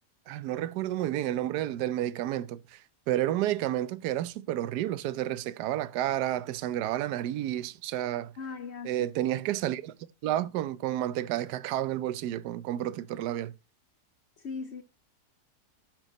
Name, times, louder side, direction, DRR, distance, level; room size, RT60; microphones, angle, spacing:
voice 1, 0.3-2.8 3.1-8.3 8.8-9.9 10.2-13.5, right 13 dB, 80° right, 1.2 m, -30 dB
voice 2, 8.4-9.0 14.4-14.8, left 5 dB, 55° left, 0.8 m, -38 dB
12.0 x 4.7 x 5.1 m
omnidirectional pair, 1.8 m